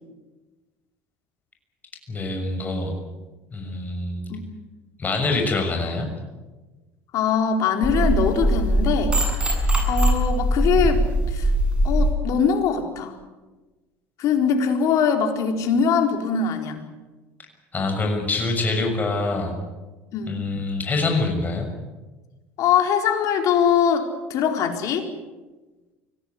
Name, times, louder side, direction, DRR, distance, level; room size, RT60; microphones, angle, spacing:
voice 1, 2.1-3.0 3.5-4.2 5.0-6.1 17.7-19.5 20.3-21.7, left 3 dB, 25° left, 3 dB, 6.7 m, -25 dB
voice 2, 7.1-9.1 9.9-11.0 11.3-11.5 11.8-13.1 14.2-16.8 20.1-20.4 22.6-25.1, left 7 dB, 60° left, 5 dB, 4.4 m, -22 dB
sound 1, 7.8-12.1, right 1 dB, 15° right, 7.5 m, -21 dB
24.5 x 17.5 x 9.8 m, 1.2 s
supercardioid pair, 95°, 6 cm